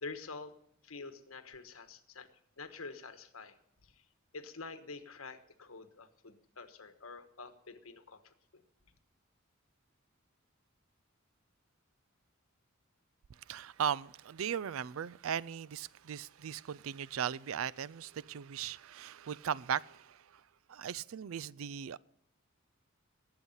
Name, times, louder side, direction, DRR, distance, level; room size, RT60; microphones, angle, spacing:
voice 1, 0.0-0.5 0.8-2.3 2.6-3.5 3.8-4.0 4.3-8.6, left 4 dB, 90° left, 1.3 m, -47 dB
voice 2, 13.5-20.4 20.7-22.0, right 8 dB, 75° right, 0.4 m, -38 dB
20.0 x 8.0 x 5.5 m
head